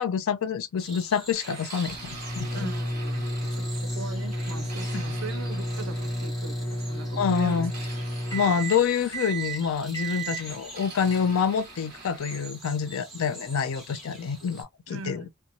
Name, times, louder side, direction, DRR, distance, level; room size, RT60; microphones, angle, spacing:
voice 1, 0.0-2.0 2.4-2.7 4.9-5.0 7.2-7.7 8.3-15.2, left 6 dB, 65° left, 0.4 m, -27 dB
sound 1, 0.8-14.6, right 1 dB, ahead, 1.1 m, -46 dB
sound 2, 1.3-3.8 4.3-6.3 7.3-9.4 10.4-12.5, right 3 dB, 35° right, 1.1 m, -45 dB
sound 3, 1.9-12.2, equal, 15° left, 0.7 m, -32 dB
voice 2, 2.5-7.7 8.4-8.7 14.9-15.3, right 3 dB, 60° right, 0.5 m, -40 dB
2.8 x 2.2 x 2.5 m
head